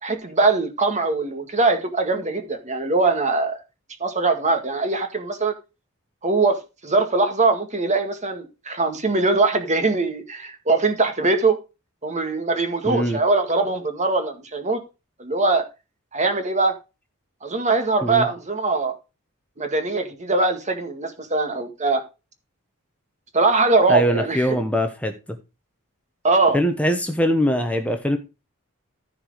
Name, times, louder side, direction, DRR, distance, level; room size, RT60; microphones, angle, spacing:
voice 1, 0.0-3.6 4.0-5.5 6.2-11.6 12.0-14.8 15.2-15.7 16.1-16.7 17.4-18.9 19.6-22.0 23.3-24.6 26.2-26.6, right 3 dB, 35° right, 1.9 m, -21 dB
voice 2, 12.8-13.2 18.0-18.3 23.9-25.4 26.5-28.2, equal, 5° left, 1.0 m, -22 dB
14.5 x 4.9 x 5.0 m
head